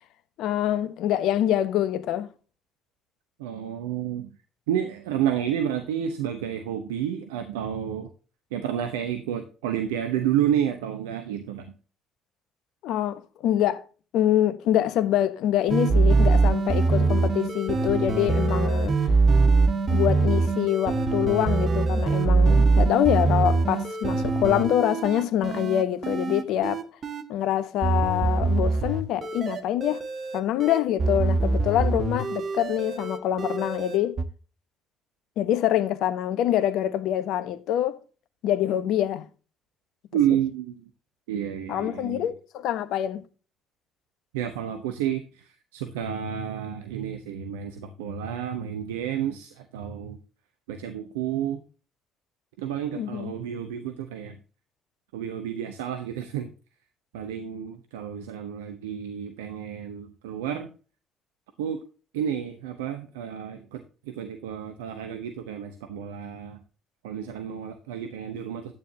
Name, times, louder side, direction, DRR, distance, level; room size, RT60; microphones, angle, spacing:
voice 1, 0.4-2.3 12.8-13.8 14.1-19.1 19.9-26.8 27.3-30.0 30.3-34.2 35.4-38.0 38.4-39.3 41.7-43.2 52.9-53.3, left 11 dB, 65° left, 1.0 m, -25 dB
voice 2, 3.4-4.3 4.7-8.1 8.5-11.7 40.1-40.8 41.3-42.3 44.3-50.2 50.7-51.6 52.6-54.4 55.1-56.5 57.1-60.7 61.6-61.8 62.1-66.6 67.0-68.7, right 9 dB, 80° right, 0.9 m, -30 dB
sound 1, 15.7-27.2 27.8-34.2, right 3 dB, 45° right, 1.6 m, -23 dB
12.0 x 9.3 x 2.8 m
hypercardioid pair, 50°, 0 cm